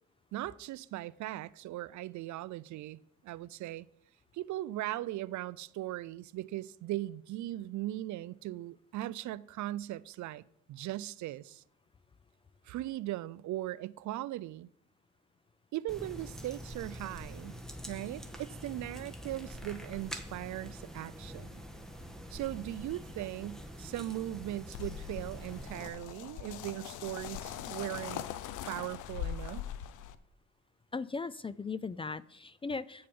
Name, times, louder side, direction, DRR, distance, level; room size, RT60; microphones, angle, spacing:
voice 1, 0.3-3.9 4.3-10.4 10.7-11.6 12.7-14.7 15.7-17.5 17.9-21.6 22.3-28.2 28.7-29.6, right 15 dB, 70° right, 0.4 m, -39 dB
sound 1, 15.9-25.9, equal, ahead, 1.3 m, -45 dB
sound 2, 24.7-30.1, left 11 dB, 80° left, 0.7 m, -41 dB
voice 2, 30.9-33.1, left 4 dB, 20° left, 0.3 m, -38 dB
8.9 x 6.7 x 5.3 m
cardioid pair, 90°, 30 cm